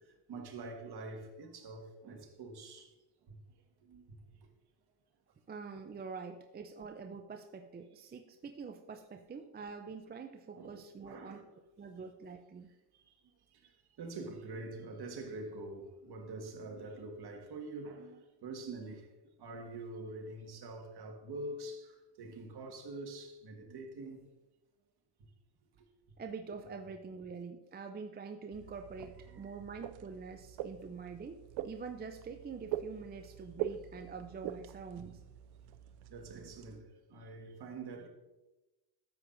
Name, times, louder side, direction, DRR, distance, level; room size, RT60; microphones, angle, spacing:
voice 1, 0.3-2.9 3.3-3.4 3.8-4.1 10.6-11.5 12.9-13.0 13.6-13.7 14.0-19.1 19.4-24.2 29.3-29.5 35.0-35.1 36.1-38.1, right 2 dB, 55° right, 1.8 m, -45 dB
voice 2, 5.5-11.4 11.8-12.7 26.2-35.2, right 5 dB, 20° right, 0.5 m, -45 dB
sound 1, 28.5-36.8, right 11 dB, 70° right, 0.6 m, -44 dB
12.5 x 7.5 x 2.6 m
cardioid pair, 95°, 48 cm